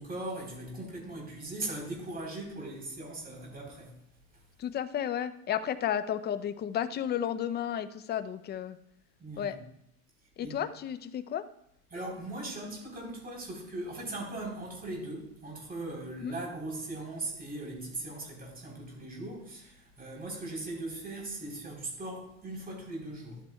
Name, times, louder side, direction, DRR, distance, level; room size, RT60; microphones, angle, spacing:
voice 1, 0.0-3.9 9.2-9.6 10.4-10.6 11.9-23.4, right 2 dB, 25° right, -2 dB, 3.8 m, -39 dB
voice 2, 4.6-8.8 9.4-9.6 10.4-11.5 16.2-16.3, left 10 dB, 25° left, 12 dB, 0.5 m, -32 dB
12.5 x 8.4 x 2.3 m, 0.78 s
supercardioid pair, 100°, 39 cm